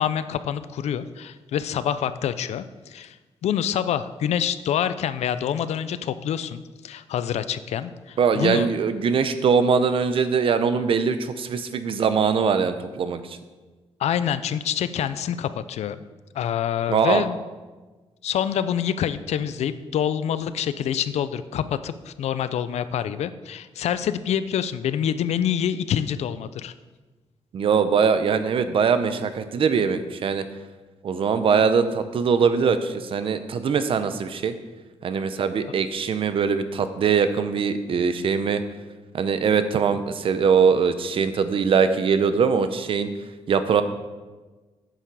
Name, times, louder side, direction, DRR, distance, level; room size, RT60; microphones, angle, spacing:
voice 1, 0.0-3.2 3.4-8.7 14.0-16.1 16.3-17.4 18.2-26.7, left 9 dB, 85° left, 13 dB, 0.4 m, -26 dB
voice 2, 8.2-13.4 16.9-17.2 27.5-30.4 31.0-34.5 35.0-38.6 39.1-43.1 43.5-43.8, right 6 dB, 55° right, 11 dB, 0.6 m, -22 dB
9.0 x 7.0 x 4.7 m, 1.3 s
wide cardioid pair, 150°, 11 cm